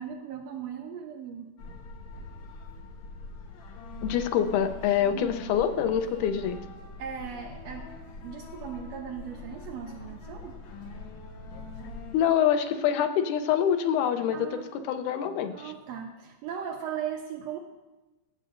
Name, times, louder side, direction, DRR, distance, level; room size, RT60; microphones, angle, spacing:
voice 1, 0.0-1.5 5.0-5.4 7.0-7.9 8.2-10.6 14.3-14.9 15.4-17.6, right 8 dB, 80° right, 3 dB, 1.5 m, -38 dB
sound 1, 1.6-12.2, left 3 dB, 70° left, 2.3 m, -43 dB
voice 2, 4.0-6.6 12.1-14.6 14.9-15.7, left 9 dB, 90° left, 8 dB, 2.2 m, -25 dB
15.5 x 7.6 x 2.5 m, 1.1 s
omnidirectional pair, 3.5 m